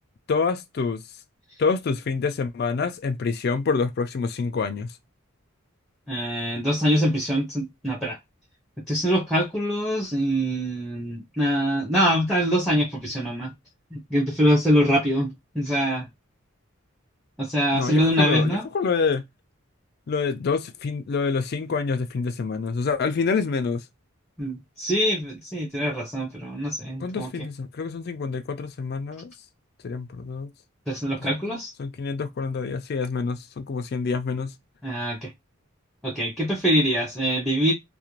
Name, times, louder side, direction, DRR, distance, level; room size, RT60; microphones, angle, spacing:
voice 1, 0.3-1.0 1.6-4.9 17.7-19.2 20.1-23.8 27.0-29.3 29.8-30.5 31.3-34.5, left 4 dB, 45° left, 0.3 m, -27 dB
voice 2, 6.1-8.2 8.9-13.5 13.9-16.1 17.4-18.6 24.4-27.3 30.9-31.7 34.8-35.3 36.0-37.7, equal, ahead, 0.6 m, -24 dB
2.4 x 2.0 x 2.9 m
head